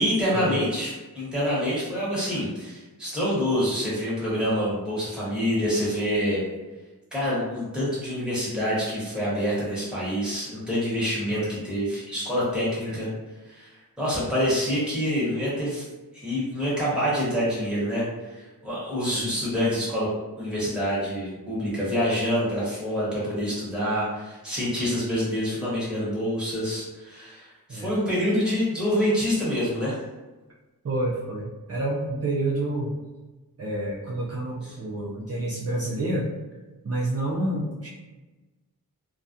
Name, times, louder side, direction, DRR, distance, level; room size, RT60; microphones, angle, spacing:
voice 1, 0.0-6.5 7.1-13.1 13.4-15.9 16.1-20.1 20.4-30.0, equal, 5° right, -9 dB, 1.2 m, -26 dB
voice 2, 30.8-33.0 33.6-36.3 36.8-37.9, right 1 dB, 45° right, -6 dB, 0.4 m, -29 dB
2.3 x 2.1 x 2.6 m, 1.2 s
wide cardioid pair, 75°, 35 cm